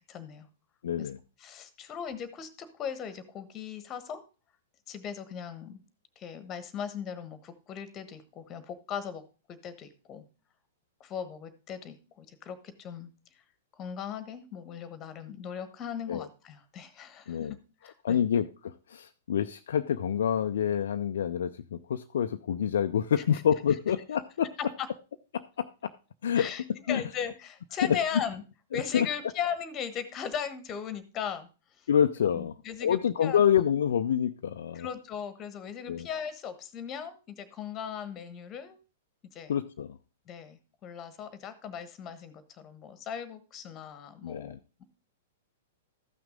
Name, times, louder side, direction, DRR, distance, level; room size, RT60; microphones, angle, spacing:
voice 1, 0.1-0.5 1.0-1.1 1.4-4.2 4.9-5.8 6.2-9.2 9.5-10.2 11.0-13.1 13.8-17.6 17.8-18.2 24.6-24.9 26.3-28.4 28.7-31.5 31.8-31.9 32.4-33.4 34.7-38.8 39.3-39.5 40.3-44.5, left 8 dB, 25° left, 1.3 m, -38 dB
voice 2, 0.8-1.2 16.1-16.3 17.3-17.5 18.0-24.5 25.3-25.9 26.2-26.5 26.9-27.0 27.8-28.0 28.7-29.1 31.9-34.9 35.9-36.1 39.5-40.0 44.2-44.6, left 8 dB, 60° left, 0.5 m, -27 dB
13.5 x 6.0 x 3.6 m
figure-of-eight pair, 105°, 0 cm